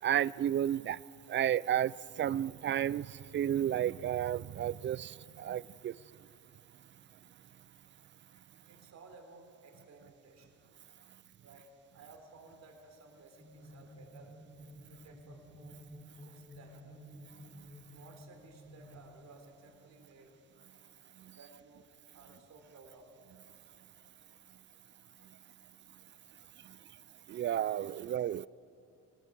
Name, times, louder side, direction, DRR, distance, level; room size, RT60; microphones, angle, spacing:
voice 1, 0.0-1.0 1.3-6.0 17.5-17.6 21.2-21.4 26.6-26.8 27.3-28.5, right 10 dB, 40° right, 0.4 m, -32 dB
voice 2, 8.7-10.8 11.4-14.3 14.8-15.8 16.2-17.0 17.9-20.3 21.4-21.9 22.1-23.2 28.0-28.1, right 3 dB, 65° right, 3.7 m, -57 dB
sound 1, 13.4-19.1, equal, 15° left, 2.9 m, -53 dB
19.5 x 19.0 x 7.0 m
cardioid pair, 90°, 30 cm